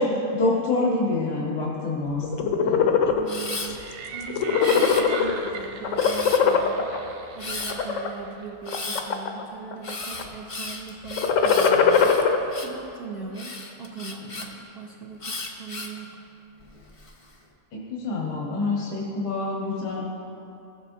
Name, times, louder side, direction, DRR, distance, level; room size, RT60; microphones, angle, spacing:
voice 1, 0.0-2.9 17.7-20.0, left 2 dB, 90° left, -3 dB, 1.8 m, -26 dB
sound 1, 2.2-3.2 3.7-3.9 4.2-5.5 5.8-7.0 7.6-8.1 8.7-9.4 9.7-10.2 11.1-12.4, left 6 dB, 65° left, 0.9 m, -20 dB
voice 2, 3.1-3.8 4.1-6.9 7.4-12.1 12.6-16.1, right 5 dB, 50° right, -4 dB, 0.7 m, -39 dB
Camera, 3.3-3.7 4.6-5.4 6.0-6.6 7.4-7.8 8.6-9.0 9.8-12.8 13.3-14.5 15.2-16.0 16.6-17.1, left 3 dB, 45° left, 0.4 m, -35 dB
sound 2, 3.7-8.6, right 5 dB, 80° right, 1.3 m, -39 dB
15.5 x 7.5 x 2.7 m, 2.8 s
omnidirectional pair, 1.6 m